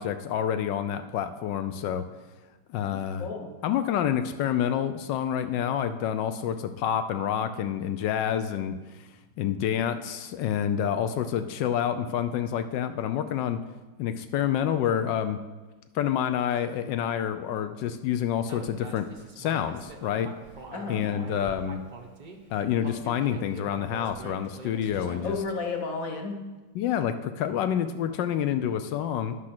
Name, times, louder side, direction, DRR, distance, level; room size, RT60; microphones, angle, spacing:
voice 1, 0.0-2.0 2.7-3.3 3.6-8.8 9.4-13.6 14.0-15.4 15.9-19.1 19.4-20.3 20.9-21.8 22.5-25.4 26.7-29.3, left 9 dB, 75° left, 10 dB, 1.1 m, -28 dB
voice 2, 2.8-3.5 20.7-21.1 24.8-26.4, left 4 dB, 50° left, 3 dB, 1.2 m, -33 dB
Human voice, 18.5-22.4 22.8-25.5, right 3 dB, 50° right, 0.5 m, -44 dB
9.7 x 6.3 x 5.9 m, 1.2 s
omnidirectional pair, 2.3 m